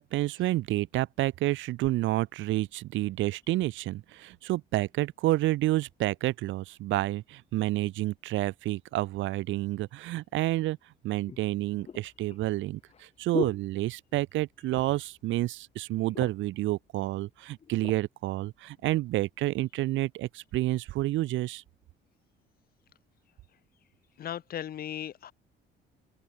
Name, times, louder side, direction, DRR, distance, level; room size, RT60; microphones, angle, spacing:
voice 1, 0.0-10.8 11.0-21.6, right 16 dB, 80° right, 2.6 m, -29 dB
sound 1, 10.3-10.4 11.3-14.4 14.7-15.1 15.5-15.6 15.9-16.6 17.3-18.0 18.7-18.8, left 7 dB, 30° left, 2.6 m, -39 dB
voice 2, 24.2-25.3, left 10 dB, 50° left, 6.7 m, -37 dB
open air
cardioid pair, 150°, 20 cm